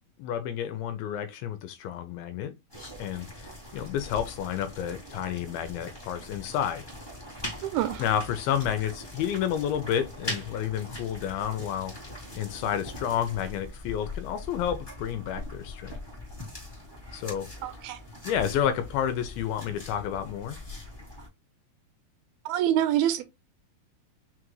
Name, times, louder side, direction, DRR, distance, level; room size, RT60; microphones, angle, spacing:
voice 1, 0.2-2.5 3.0-6.9 8.0-11.9 12.4-16.0 17.1-17.7 18.2-20.6, left 9 dB, 80° left, 2.2 m, -30 dB
sound 1, 2.7-21.3, left 1 dB, 25° left, 0.5 m, -41 dB
voice 2, 7.6-8.0 17.6-18.0 22.5-23.2, right 12 dB, 80° right, 2.3 m, -26 dB
5.8 x 2.4 x 3.1 m
omnidirectional pair, 4.5 m